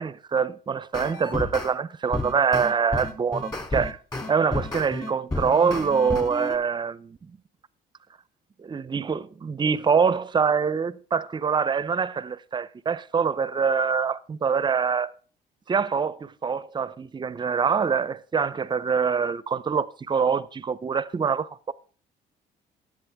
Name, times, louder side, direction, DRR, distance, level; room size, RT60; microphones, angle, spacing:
voice 1, 0.0-4.0 4.3-7.3 8.7-15.1 15.7-21.7, right 6 dB, 25° right, 0.6 m, -25 dB
sound 1, 0.9-1.7 2.1-6.6, left 2 dB, 20° left, 2.7 m, -31 dB
16.0 x 10.5 x 3.5 m
cardioid pair, 110°, 17 cm